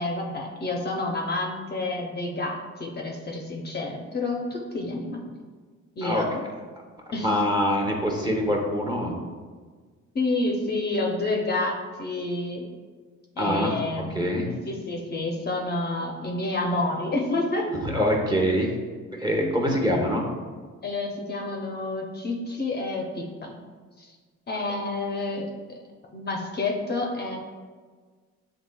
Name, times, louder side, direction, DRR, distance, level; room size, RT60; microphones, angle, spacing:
voice 1, 0.0-5.4 6.0-6.4 7.1-7.3 10.1-12.7 13.4-14.3 14.6-17.7 20.8-23.6 24.0-24.1 24.5-25.5 26.1-27.4, left 2 dB, 35° left, 0 dB, 0.6 m, -29 dB
voice 2, 6.0-6.5 7.2-9.1 13.4-13.7 14.1-14.5 17.8-18.7 19.1-20.2, equal, 15° right, -1 dB, 0.8 m, -24 dB
7.0 x 2.8 x 2.2 m, 1.5 s
cardioid pair, 90°, 30 cm